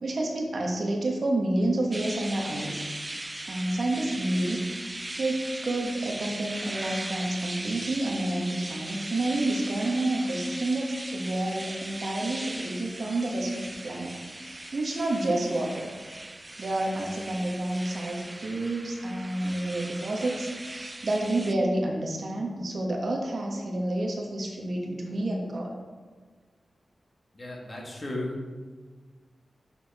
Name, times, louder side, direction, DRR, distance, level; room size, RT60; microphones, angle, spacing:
voice 1, 0.0-3.1 3.5-4.6 5.2-14.1 14.4-15.9 16.6-25.7, right 1 dB, 60° right, 1 dB, 1.4 m, -29 dB
sound 1, 1.9-21.5, right 1 dB, 20° right, 0.4 m, -39 dB
voice 2, 27.3-28.5, left 1 dB, 40° left, -1 dB, 1.8 m, -35 dB
6.5 x 6.0 x 4.3 m, 1.5 s
cardioid pair, 70°, 0 cm